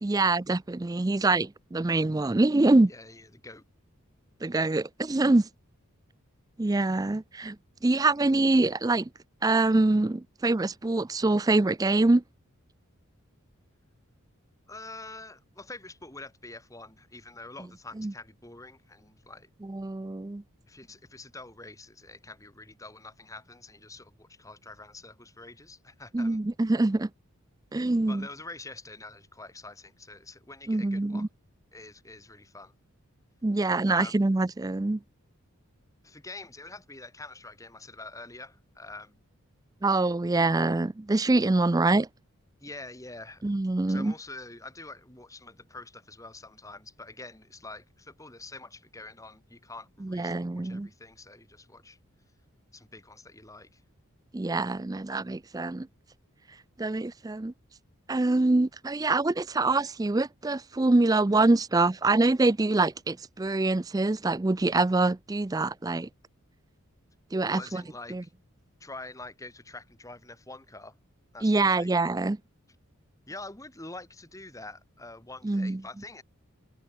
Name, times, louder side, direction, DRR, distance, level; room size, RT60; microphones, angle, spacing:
voice 1, 0.0-2.9 4.4-5.5 6.6-7.6 7.8-9.1 9.4-12.2 18.0-18.1 19.6-20.4 26.1-27.1 27.7-28.3 30.7-31.3 33.4-35.0 39.8-42.1 43.4-44.1 50.0-50.9 54.3-55.9 56.8-57.5 58.1-66.1 67.3-67.8 68.1-68.2 71.4-72.4 75.4-75.8, right 2 dB, 15° right, 0.4 m, -25 dB
voice 2, 2.9-3.6 14.7-19.5 20.7-26.4 28.1-31.3 31.7-32.7 33.9-34.1 36.0-39.2 42.6-43.4 43.9-52.0 52.7-53.8 67.4-68.3 68.8-71.0 71.3-71.9 73.3-76.2, left 2 dB, 15° left, 3.0 m, -45 dB
head